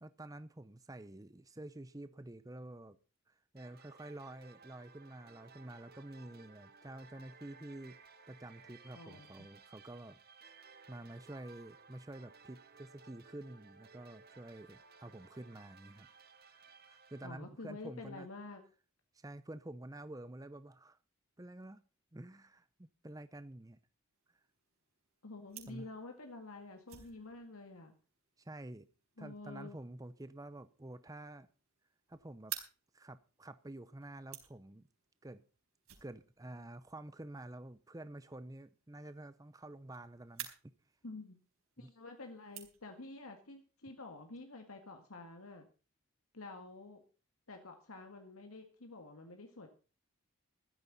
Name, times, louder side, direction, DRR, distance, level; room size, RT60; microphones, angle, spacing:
voice 1, 0.0-3.0 3.3-8.0 8.3-10.2 10.4-10.5 10.9-16.1 16.5-18.3 19.1-21.0 21.4-21.8 22.1-23.8 24.3-24.4 25.7-25.9 28.4-28.9 29.2-31.5 32.1-32.5 32.9-34.8 35.2-35.4 36.0-40.7 41.8-41.9, right 1 dB, 15° right, 13 dB, 0.6 m, -49 dB
sound 1, 3.6-17.3, right 5 dB, 45° right, 1.7 m, -59 dB
voice 2, 8.9-9.3 17.2-18.6 25.2-27.9 29.2-29.8 41.0-41.4 41.8-45.7 46.3-47.0 47.5-49.7, left 2 dB, 75° left, 5 dB, 2.0 m, -49 dB
sound 2, 24.1-43.2, right 12 dB, 75° right, 4.6 m, -54 dB
15.5 x 13.0 x 4.1 m, 0.36 s
head